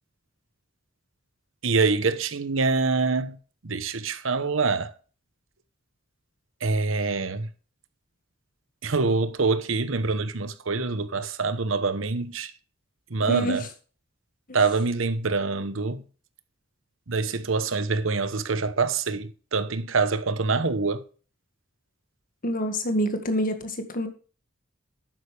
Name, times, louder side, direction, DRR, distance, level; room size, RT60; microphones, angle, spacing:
voice 1, 1.6-3.4 3.6-4.9 6.6-7.5 8.8-12.5 13.1-13.6 14.5-16.0 17.1-21.0, right 4 dB, 70° right, 1.0 m, -25 dB
voice 2, 13.3-13.6 14.5-14.6 22.4-24.1, equal, 45° left, 1.9 m, -26 dB
12.0 x 9.1 x 3.4 m
head